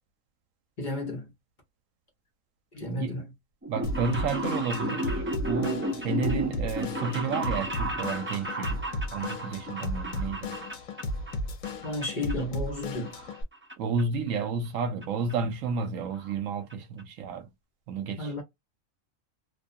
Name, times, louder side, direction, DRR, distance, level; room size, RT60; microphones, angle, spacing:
voice 1, 0.8-1.3 2.7-3.3 11.8-13.1 18.2-18.4, left 1 dB, 40° left, 0.9 m, -32 dB
sound 1, 3.6-11.4 11.6-12.3 12.7-13.7 14.0-14.1 15.0-15.1 15.3-15.4 15.7-15.8 16.0-16.3 16.7-16.8 17.0-17.1, right 1 dB, 15° right, 0.4 m, -34 dB
voice 2, 3.7-8.8 9.1-10.5 13.8-17.5 17.9-18.3, right 5 dB, 75° right, 0.9 m, -31 dB
Drum kit / Drum, 3.8-13.4, left 2 dB, 70° left, 1.0 m, -35 dB
2.5 x 2.2 x 2.6 m
omnidirectional pair, 1.4 m